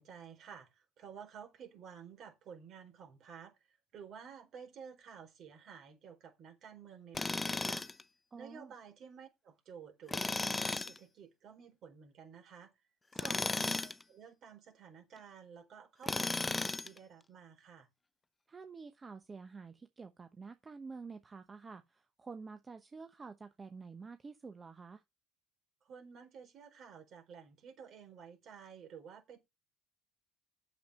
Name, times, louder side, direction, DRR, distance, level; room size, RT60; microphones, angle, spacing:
voice 1, 0.0-7.9 8.3-12.7 13.1-17.9 25.8-29.4, right 7 dB, 55° right, 4.3 m, -53 dB
Tools, 7.1-8.0 10.1-11.0 13.1-14.0 16.0-17.0, left 3 dB, 20° left, 0.7 m, -35 dB
voice 2, 8.3-8.7 13.2-13.4 18.5-25.0, right 4 dB, 30° right, 1.0 m, -49 dB
8.7 x 7.3 x 5.5 m
hypercardioid pair, 70°, 0 cm